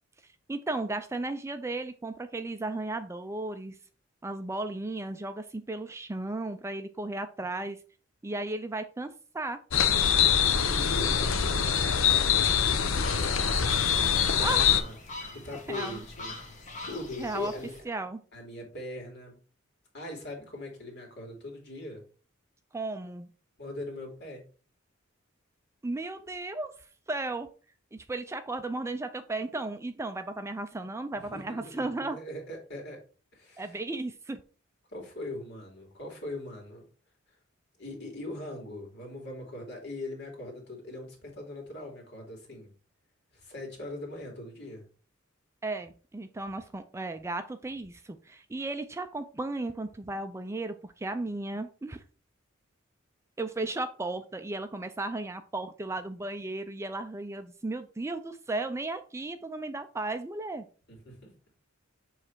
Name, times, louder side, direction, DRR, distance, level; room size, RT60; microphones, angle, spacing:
voice 1, 0.5-3.8 4.2-7.8 8.2-9.6 14.4-14.7 15.5-16.0 17.2-17.5 17.8-18.2 22.7-23.3 25.8-27.5 27.9-32.2 33.6-34.4 45.6-52.0 53.4-60.7, right 2 dB, 15° right, 9 dB, 0.4 m, -35 dB
sound 1, 9.7-14.8, left 8 dB, 75° left, 0.7 m, -24 dB
voice 2, 10.7-13.7 14.2-15.0 15.3-16.4 16.8-17.7 18.3-19.4 19.9-22.0 23.6-24.4 31.2-33.0 33.3-33.8 34.9-36.8 37.8-42.7 43.3-44.9 61.1-61.3, left 1 dB, 60° left, 0 dB, 2.6 m, -41 dB
sound 2, 12.4-17.8, left 2 dB, 40° left, 1.4 m, -43 dB
7.3 x 3.2 x 4.5 m, 0.38 s
head